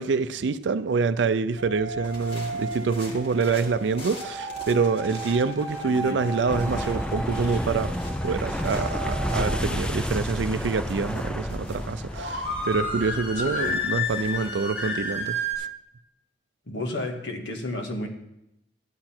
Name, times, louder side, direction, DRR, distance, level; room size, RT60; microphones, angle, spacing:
voice 1, 0.0-7.9 8.2-15.7, right 4 dB, 80° right, 0.4 m, -26 dB
sound 1, 1.6-15.5, left 1 dB, 65° left, 3.5 m, -33 dB
sound 2, 2.0-14.7, left 1 dB, 30° left, 1.7 m, -45 dB
voice 2, 5.8-6.2 13.3-13.8 16.7-18.1, left 1 dB, 85° left, 1.8 m, -32 dB
sound 3, 6.5-14.5, equal, 5° left, 0.5 m, -31 dB
12.5 x 9.7 x 4.4 m
head